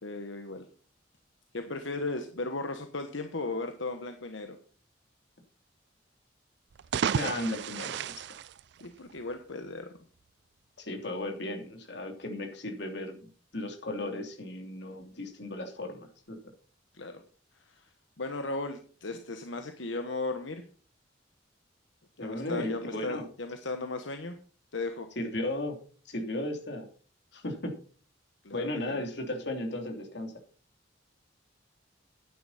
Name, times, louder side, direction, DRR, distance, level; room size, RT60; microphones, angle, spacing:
voice 1, 0.0-0.6 1.5-4.6 8.8-9.9 16.9-17.2 17.7-17.9 18.2-20.6 22.2-24.4 24.7-25.1 28.4-29.0, left 3 dB, 85° left, 6 dB, 1.2 m, -36 dB
sound 1, 6.7-9.3, right 7 dB, 65° right, 0.4 m, -33 dB
voice 2, 7.1-8.1 10.8-16.4 22.2-23.2 25.2-25.8 26.0-26.9 27.3-27.8 28.5-30.3, left 1 dB, 65° left, 3 dB, 3.0 m, -35 dB
11.0 x 9.9 x 4.2 m, 0.41 s
head